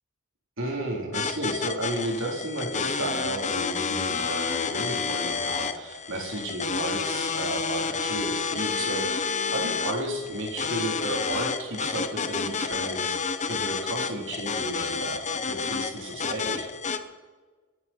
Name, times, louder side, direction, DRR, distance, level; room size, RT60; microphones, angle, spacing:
voice 1, 0.6-13.2 13.4-16.7, right 1 dB, 60° right, 0 dB, 3.8 m, -33 dB
sound 1, 1.1-17.0, left 5 dB, 35° left, 0.9 m, -30 dB
28.0 x 11.0 x 4.5 m, 1.4 s
head